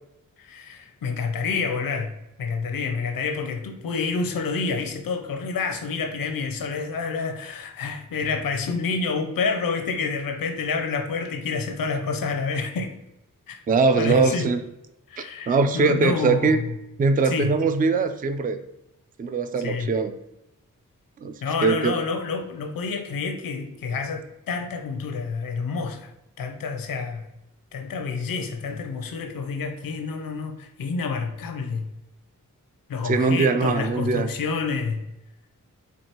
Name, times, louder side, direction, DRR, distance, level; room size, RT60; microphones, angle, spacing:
voice 1, 0.4-12.9 13.5-13.6 14.0-14.5 15.1-16.7 17.3-17.5 19.6-19.9 21.4-26.1 26.4-27.3 27.7-31.9 32.9-35.0, left 4 dB, 80° left, 6 dB, 0.6 m, -28 dB
voice 2, 13.7-14.6 15.2-16.6 17.0-18.6 19.2-20.2 21.2-21.3 21.6-21.9 33.0-34.3, right 4 dB, 25° right, 9 dB, 0.3 m, -21 dB
4.6 x 2.6 x 2.9 m, 0.87 s
cardioid pair, 45°, 34 cm